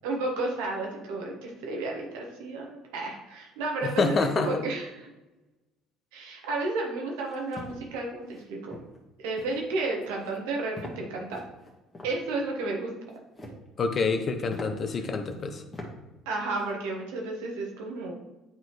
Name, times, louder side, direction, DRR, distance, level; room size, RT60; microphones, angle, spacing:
voice 1, 0.0-4.8 6.1-8.7 9.2-11.4 12.0-12.9 16.2-18.1, right 2 dB, 75° right, 0 dB, 1.5 m, -32 dB
voice 2, 3.8-4.5 13.8-15.6, left 4 dB, 40° left, 7 dB, 0.8 m, -27 dB
sound 1, 7.2-7.8 8.3-8.4 8.7-9.0 9.3-9.6 10.0-10.4 10.8-11.0 11.3-12.1 13.1-13.7 14.1-14.2 14.5-14.7 15.3-15.4 15.7-15.9 16.3-16.6, left 2 dB, 25° left, 1.7 m, -43 dB
8.8 x 4.1 x 3.2 m, 1.1 s
hypercardioid pair, 60°, 0 cm